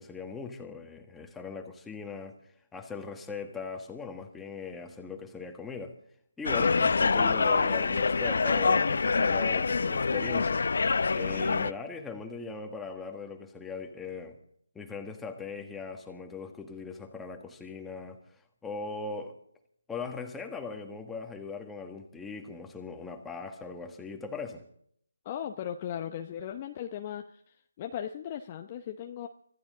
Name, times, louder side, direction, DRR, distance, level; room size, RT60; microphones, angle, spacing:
voice 1, 0.0-2.4 2.7-6.0 6.4-10.6 11.1-14.4 14.7-18.2 18.6-19.4 19.9-24.6, left 4 dB, 5° left, 3 dB, 1.5 m, -39 dB
sound 1, 6.4-11.7, left 4 dB, 55° left, 0.6 m, -25 dB
voice 2, 25.2-29.3, left 10 dB, 25° left, 5 dB, 0.8 m, -37 dB
25.0 x 14.5 x 3.9 m, 0.66 s
figure-of-eight pair, 160°, 0 cm